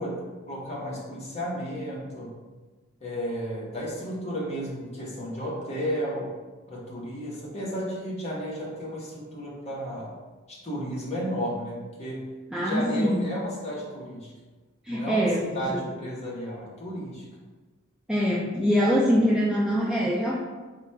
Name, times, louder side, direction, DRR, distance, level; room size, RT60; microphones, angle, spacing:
voice 1, 0.0-2.3 3.0-6.3 6.7-10.1 10.5-12.3 12.6-14.3 14.9-17.2, equal, 30° left, -5 dB, 1.1 m, -33 dB
voice 2, 12.5-13.3 14.8-15.8 18.1-20.3, equal, 5° right, -5 dB, 0.3 m, -24 dB
3.9 x 2.3 x 4.5 m, 1.3 s
head